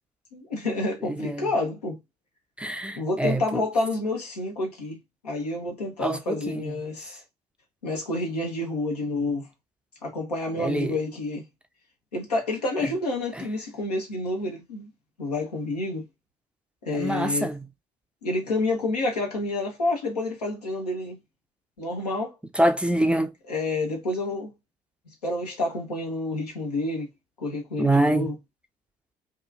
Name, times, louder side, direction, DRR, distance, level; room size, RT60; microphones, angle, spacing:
voice 1, 0.3-2.0 3.0-5.0 5.2-7.2 7.8-9.5 10.0-11.4 12.1-14.9 15.2-16.0 16.8-17.5 18.2-21.2 21.8-22.4 23.5-24.5 25.2-27.1 27.4-28.3, left 2 dB, 85° left, 0.7 m, -29 dB
voice 2, 1.0-1.5 2.6-3.6 6.0-6.8 9.2-9.3 10.6-11.0 16.9-17.6 22.5-23.3 27.8-28.3, right 1 dB, 5° right, 0.4 m, -25 dB
2.9 x 2.3 x 2.3 m
figure-of-eight pair, 50°, 20 cm